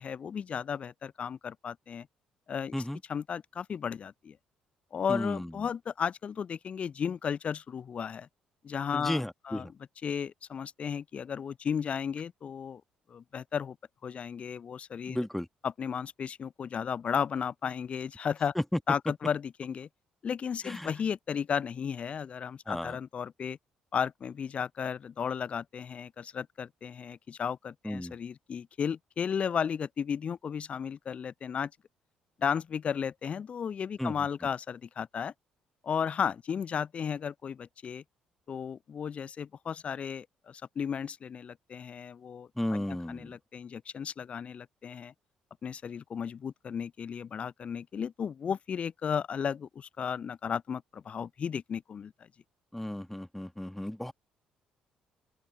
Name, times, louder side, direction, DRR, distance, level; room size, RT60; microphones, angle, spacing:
voice 1, 0.0-2.1 2.5-2.7 3.1-4.4 4.9-8.3 8.6-12.8 13.1-13.8 14.0-15.2 15.6-18.5 18.9-19.9 20.2-23.6 23.9-31.7 32.4-35.3 35.8-38.0 38.5-45.1 45.6-52.3, left 7 dB, 40° left, 0.5 m, -34 dB
voice 2, 5.1-5.5 8.9-9.7 15.1-15.5 18.7-18.8 20.6-20.9 22.7-23.0 27.8-28.2 34.0-34.1 42.6-43.3 52.7-54.1, left 1 dB, 5° left, 1.5 m, -34 dB
open air
figure-of-eight pair, 45°, 3 cm